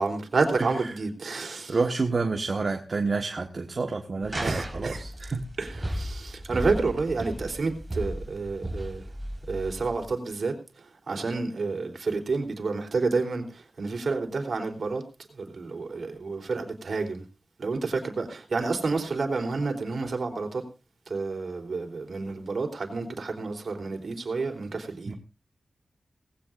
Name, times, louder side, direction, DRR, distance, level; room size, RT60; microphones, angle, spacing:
voice 1, 0.0-1.8 4.3-5.0 5.6-9.0 9.5-10.5 11.1-13.4 13.8-15.0 15.4-17.2 17.6-20.6 21.1-25.1, right 4 dB, 65° right, 3.8 m, -29 dB
voice 2, 0.6-0.9 1.7-5.5 6.5-6.6 25.1-25.2, right 4 dB, 50° right, 1.6 m, -29 dB
sound 1, 4.2-10.1, equal, 15° right, 4.7 m, -35 dB
19.0 x 16.5 x 2.6 m
wide cardioid pair, 90°, 0 cm